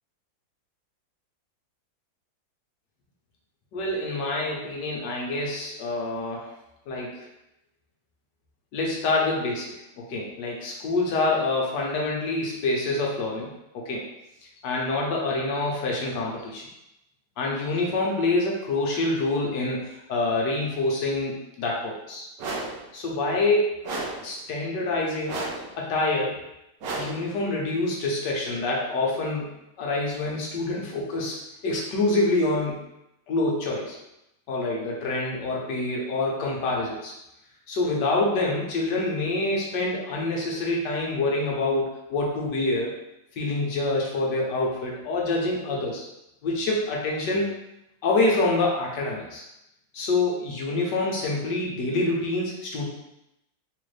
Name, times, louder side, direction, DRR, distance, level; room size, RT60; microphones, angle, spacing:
voice 1, 3.7-6.5 6.9-7.2 8.7-14.0 14.6-16.6 17.4-22.3 22.9-23.8 24.2-25.4 25.7-26.4 26.9-31.4 31.6-32.8 33.3-34.0 34.5-37.1 37.7-42.9 43.3-46.0 46.4-47.5 48.0-49.4 49.9-52.9, left 2 dB, 70° left, -2 dB, 1.3 m, -26 dB
sound 1, 22.4-22.8 23.8-24.3 25.3-25.7 26.8-27.3, right 2 dB, 70° right, 1.2 m, -32 dB
3.8 x 2.5 x 3.2 m, 0.87 s
omnidirectional pair, 2.1 m